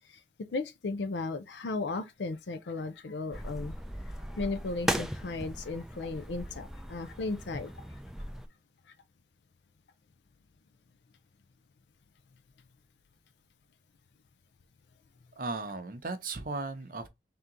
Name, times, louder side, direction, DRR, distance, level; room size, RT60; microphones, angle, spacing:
voice 1, 0.5-3.8 4.0-8.0, left 3 dB, 85° left, 0.5 m, -36 dB
sound 1, 3.3-8.5, equal, ahead, 0.3 m, -37 dB
voice 2, 15.3-17.1, right 3 dB, 50° right, 0.7 m, -36 dB
3.5 x 2.9 x 3.7 m
head